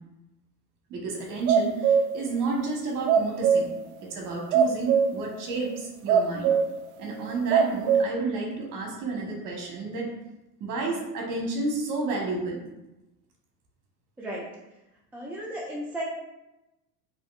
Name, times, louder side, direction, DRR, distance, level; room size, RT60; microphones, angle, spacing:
voice 1, 0.9-3.7 4.0-6.5 7.0-10.1 10.6-12.6, right 3 dB, 40° right, -1 dB, 1.4 m, -31 dB
sound 1, 1.5-2.2 3.1-3.7 4.5-5.2 5.7-5.8 6.1-6.8 7.2-8.0, right 7 dB, 65° right, 0.5 m, -21 dB
voice 2, 15.1-16.0, right 1 dB, 5° right, -3 dB, 0.3 m, -34 dB
5.0 x 2.9 x 2.4 m, 0.97 s
figure-of-eight pair, 75°, 48 cm